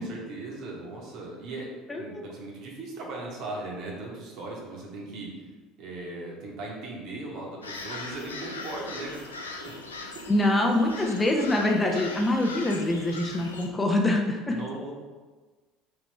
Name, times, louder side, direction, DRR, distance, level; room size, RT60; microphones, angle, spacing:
voice 1, 0.0-1.7 1.9-5.5 5.8-9.7 10.0-10.2 14.5-14.9, right 2 dB, 50° right, -2 dB, 1.0 m, -38 dB
voice 2, 1.9-2.3 10.3-14.6, left 1 dB, 20° left, 1 dB, 0.5 m, -25 dB
sound 1, 7.6-13.7, left 3 dB, 80° left, 0.3 m, -40 dB
3.4 x 2.9 x 4.1 m, 1.3 s
figure-of-eight pair, 65°, 0 cm